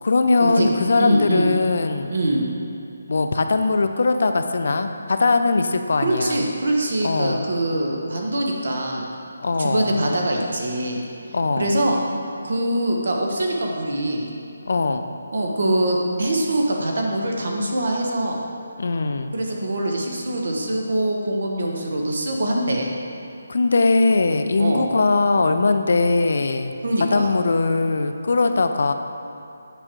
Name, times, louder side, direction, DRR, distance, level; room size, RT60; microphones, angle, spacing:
voice 1, 0.0-2.2 3.1-6.4 7.0-7.4 9.4-9.9 11.3-11.7 14.7-15.1 18.8-19.3 23.5-26.7 27.0-28.9, left 3 dB, 65° left, 7 dB, 0.4 m, -20 dB
voice 2, 0.9-1.5 2.1-2.5 6.0-9.1 9.6-11.0 11.6-12.0 12.4-14.3 15.3-18.4 19.3-22.9 24.6-24.9 26.8-27.3, right 1 dB, 65° right, 0 dB, 1.1 m, -23 dB
8.7 x 4.9 x 3.0 m, 2.7 s
hypercardioid pair, 165°, 0 cm